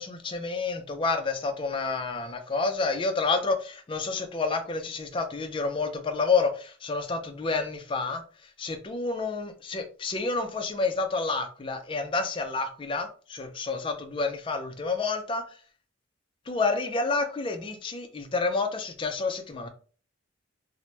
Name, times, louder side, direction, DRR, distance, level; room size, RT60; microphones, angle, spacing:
voice 1, 0.0-8.2 8.6-15.4 16.5-19.7, left 4 dB, 25° left, 0.3 m, -29 dB
2.8 x 2.0 x 3.1 m
head